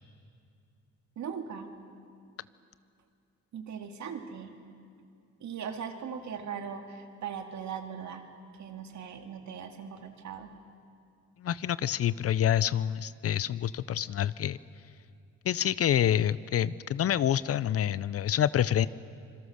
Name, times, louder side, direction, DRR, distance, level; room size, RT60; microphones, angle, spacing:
voice 1, 1.2-1.7 3.5-4.5 5.4-8.2 8.6-10.5, right 7 dB, 70° right, 5 dB, 2.2 m, -39 dB
voice 2, 11.4-14.6 15.4-18.9, left 10 dB, 50° left, 18 dB, 0.6 m, -27 dB
26.5 x 21.5 x 6.5 m, 2.3 s
cardioid pair, 90°, 30 cm